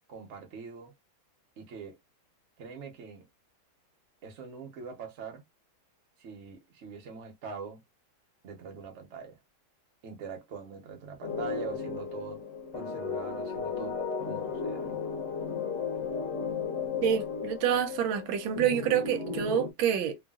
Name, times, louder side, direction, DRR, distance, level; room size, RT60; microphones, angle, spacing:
voice 1, 0.1-0.9 1.6-2.0 2.6-3.3 4.2-5.4 6.2-7.8 8.4-9.4 10.0-12.4 12.7-15.0, right 5 dB, 50° right, 0.9 m, -43 dB
sound 1, 11.2-19.7, left 5 dB, 50° left, 1.0 m, -35 dB
voice 2, 17.0-20.2, right 9 dB, 85° right, 1.4 m, -27 dB
3.2 x 2.3 x 2.3 m
omnidirectional pair, 2.2 m